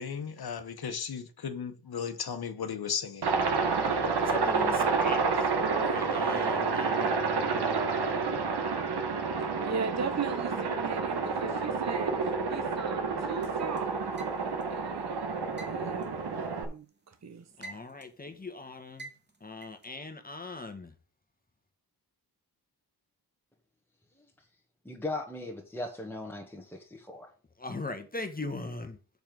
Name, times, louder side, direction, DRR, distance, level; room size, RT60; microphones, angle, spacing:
voice 1, 0.0-3.3, left 7 dB, 65° left, 1.2 m, -35 dB
Aircraft, 3.2-16.6, right 4 dB, 70° right, 1.8 m, -29 dB
voice 2, 4.0-7.2 17.6-19.1 19.4-20.9 27.6-29.0, left 2 dB, 20° left, 1.4 m, -40 dB
voice 3, 9.6-12.1 12.5-14.1 14.7-17.7, right 5 dB, 40° right, 1.0 m, -38 dB
sound 1, 13.4-14.7 15.6-17.0 17.3-18.2 19.0-19.9, right 2 dB, 25° right, 1.7 m, -47 dB
voice 4, 24.8-27.3, left 2 dB, 5° left, 1.7 m, -38 dB
7.0 x 5.4 x 6.3 m
wide cardioid pair, 115°, 40 cm